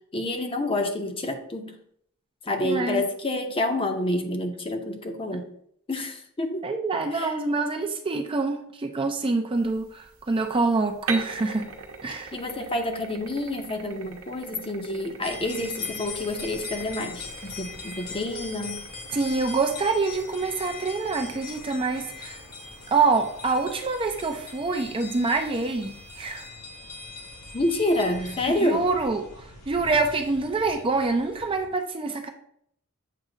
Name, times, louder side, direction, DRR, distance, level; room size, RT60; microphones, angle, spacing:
voice 1, 0.1-1.7 2.4-5.5 5.9-6.7 7.1-7.3 12.3-18.8 27.5-28.8, left 1 dB, 25° left, 5 dB, 0.7 m, -28 dB
voice 2, 2.6-3.0 5.3-5.4 6.6-11.7 12.0-12.3 19.1-22.4 22.9-26.5 28.6-32.3, right 3 dB, 25° right, 4 dB, 0.4 m, -26 dB
sound 1, 9.5-26.5, right 4 dB, 65° right, 0.9 m, -43 dB
sound 2, 15.2-31.7, left 4 dB, 75° left, 1.4 m, -41 dB
7.5 x 2.7 x 4.9 m, 0.67 s
head